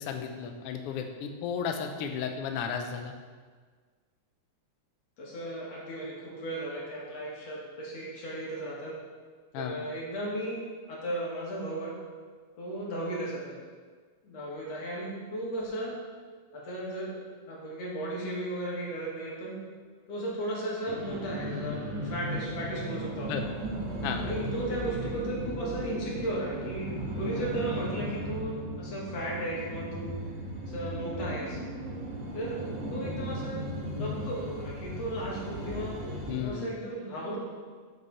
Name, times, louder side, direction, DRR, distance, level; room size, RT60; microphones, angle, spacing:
voice 1, 0.0-3.1 9.5-9.8 23.1-23.4 24.0-24.2 36.3-36.8, left 7 dB, 85° left, 5 dB, 1.3 m, -34 dB
voice 2, 5.2-9.0 9.5-10.6 10.9-12.0 12.6-13.6 14.2-15.9 16.5-19.6 20.1-23.5 24.2-30.2 30.7-31.6 32.3-32.6 32.9-36.0 36.4-37.4, right 1 dB, 60° left, -4 dB, 2.8 m, -35 dB
sound 1, 20.8-36.4, right 1 dB, 70° right, 2.6 m, -36 dB
7.8 x 7.5 x 4.1 m, 1.5 s
omnidirectional pair, 3.5 m